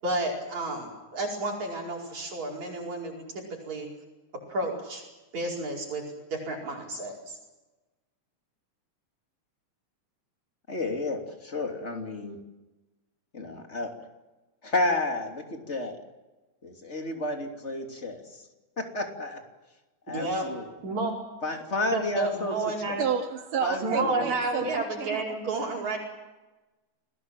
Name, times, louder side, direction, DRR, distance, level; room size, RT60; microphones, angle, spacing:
voice 1, 0.0-3.2 3.6-3.9 4.5-5.0 5.3-6.0 6.3-7.4 20.1-20.5 20.8-21.1 21.9-23.0 23.8-26.0, right 2 dB, 60° right, -1 dB, 6.1 m, -31 dB
voice 2, 10.7-12.4 13.3-13.9 14.6-16.0 16.6-18.5 18.8-19.4 20.1-20.7 21.4-23.0 23.6-24.3 24.6-24.7, left 2 dB, 20° left, 4 dB, 3.1 m, -32 dB
voice 3, 23.0-25.4, right 7 dB, 85° right, 4 dB, 3.7 m, -30 dB
29.5 x 20.0 x 7.6 m, 1.1 s
omnidirectional pair, 3.7 m